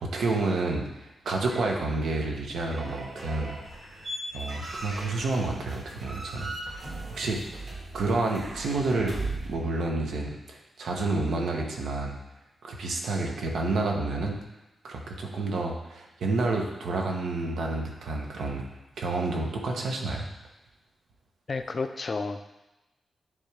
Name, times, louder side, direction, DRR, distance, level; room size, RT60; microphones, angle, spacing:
voice 1, 0.0-3.5 4.3-6.5 7.1-7.6 7.9-9.2 9.4-12.2 12.6-14.4 14.8-18.6 19.0-20.3, right 3 dB, 90° right, 1 dB, 1.0 m, -29 dB
sound 1, 1.5-9.6, right 2 dB, 55° right, 1.6 m, -39 dB
voice 2, 21.5-22.4, left 4 dB, 35° left, 8 dB, 0.4 m, -31 dB
9.8 x 3.6 x 3.4 m, 0.99 s
wide cardioid pair, 155°, 0 cm